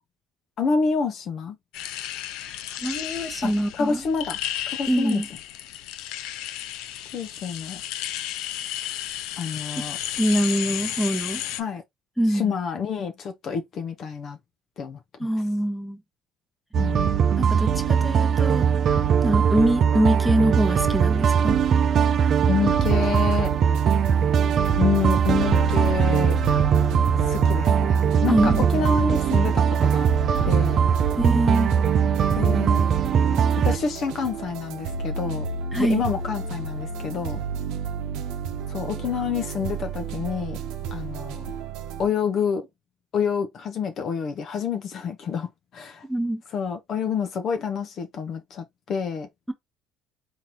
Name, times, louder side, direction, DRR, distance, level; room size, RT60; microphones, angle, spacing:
voice 1, 0.6-1.6 3.4-3.5 3.8-4.4 4.7-5.2 7.1-7.8 9.4-10.0 11.6-11.8 12.3-14.4 14.8-15.0 16.8-17.1 22.5-23.5 24.8-26.4 27.3-30.1 30.4-30.9 32.3-32.9 33.6-35.4 35.8-37.4 38.7-40.6 40.9-41.5 42.0-42.7 43.1-46.0 46.5-49.3, left 6 dB, 50° left, 0.7 m, -28 dB
sound 1, 1.7-11.6, left 12 dB, 80° left, 0.5 m, -33 dB
voice 2, 2.4-4.0 4.9-5.3 9.7-9.8 10.2-11.4 12.2-12.6 15.2-16.0 17.4-18.7 19.2-21.6 28.2-28.7 31.2-31.7 35.7-36.0 46.1-46.4, right 1 dB, 5° left, 1.0 m, -24 dB
sound 2, 16.7-33.8, right 7 dB, 50° right, 0.6 m, -20 dB
sound 3, 22.8-42.1, right 4 dB, 75° right, 0.8 m, -33 dB
3.8 x 2.8 x 2.9 m
cardioid pair, 105°, 0 cm